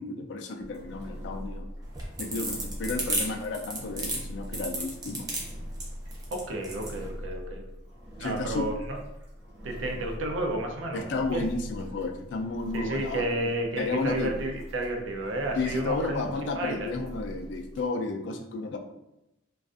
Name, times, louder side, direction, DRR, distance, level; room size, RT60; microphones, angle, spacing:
voice 1, 0.0-1.6 2.2-5.3 8.2-8.7 10.9-13.3 13.8-14.3 15.6-18.8, left 3 dB, 65° left, 4 dB, 0.3 m, -32 dB
Engine, 0.6-17.9, equal, 55° right, 1.0 m, -42 dB
sound 1, 1.8-7.0, right 2 dB, 20° right, 0.4 m, -32 dB
voice 2, 6.3-7.6 8.2-9.0 9.6-11.5 12.7-16.9, right 1 dB, 85° right, 2 dB, 0.4 m, -31 dB
2.4 x 2.3 x 2.4 m, 0.89 s
head